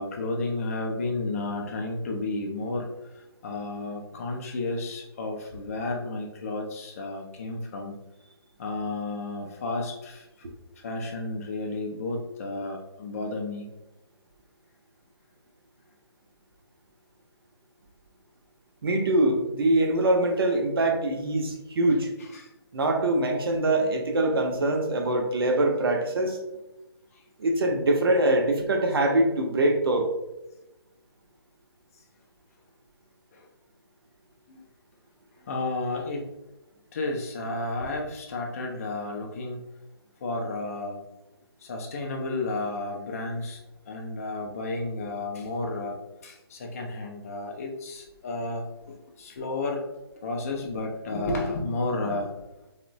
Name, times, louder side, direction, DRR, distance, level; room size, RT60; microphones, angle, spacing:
voice 1, 0.0-7.9 8.6-13.7 22.2-22.5 26.2-26.3 27.1-27.2 33.3-33.5 34.5-34.6 35.4-36.3 36.9-39.7 40.2-41.0 41.6-46.0 46.2-49.9 50.2-52.3, left 2 dB, 35° left, 1 dB, 0.4 m, -32 dB
voice 2, 18.8-22.1 22.7-26.4 27.4-30.1, right 1 dB, 60° right, 3 dB, 0.5 m, -23 dB
2.9 x 2.1 x 2.5 m, 0.96 s
hypercardioid pair, 155°, 14 cm